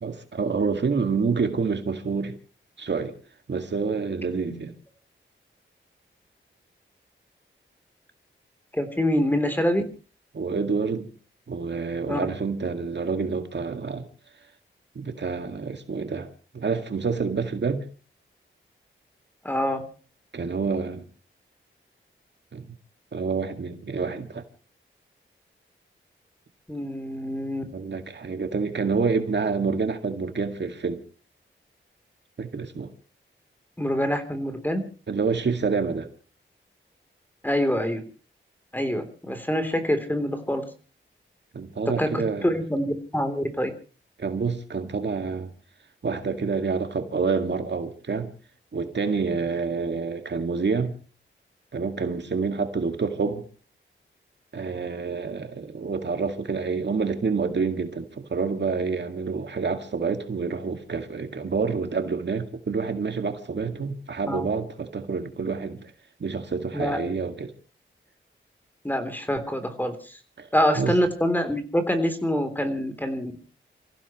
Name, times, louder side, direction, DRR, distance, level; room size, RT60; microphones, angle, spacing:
voice 1, 0.0-2.4 2.8-3.1 3.5-4.7 10.3-11.1 11.5-14.1 15.0-17.9 20.3-21.0 22.5-22.7 23.1-24.4 27.7-31.0 32.4-32.9 35.1-36.1 41.5-42.5 44.2-45.5 46.0-48.3 48.7-50.9 51.7-53.5 54.5-65.9 66.2-67.5 70.4-70.5 70.8-70.9, right 5 dB, 60° right, 2.1 m, -28 dB
voice 2, 8.7-9.8 12.1-12.2 19.4-19.8 26.7-27.6 33.8-34.8 37.4-38.0 38.7-40.6 41.9-43.7 64.3-64.5 66.7-67.0 68.8-70.2 70.5-73.4, equal, 10° left, 3.4 m, -25 dB
29.5 x 15.5 x 3.1 m
wide cardioid pair, 115°, 21 cm